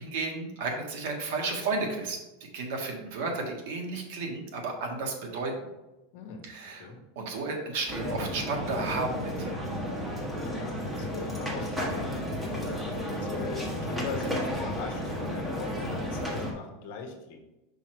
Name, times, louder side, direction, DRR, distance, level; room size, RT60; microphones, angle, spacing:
voice 1, 0.0-2.2 2.5-5.5 6.4-9.5, right 3 dB, 65° right, 1 dB, 1.6 m, -33 dB
voice 2, 6.1-6.5 6.8-7.0 10.3-12.6 12.9-17.4, left 4 dB, 60° left, 3 dB, 1.3 m, -40 dB
sound 1, 7.9-16.5, equal, 5° right, 1.2 m, -33 dB
5.5 x 4.6 x 4.5 m, 1.0 s
supercardioid pair, 160°, 0 cm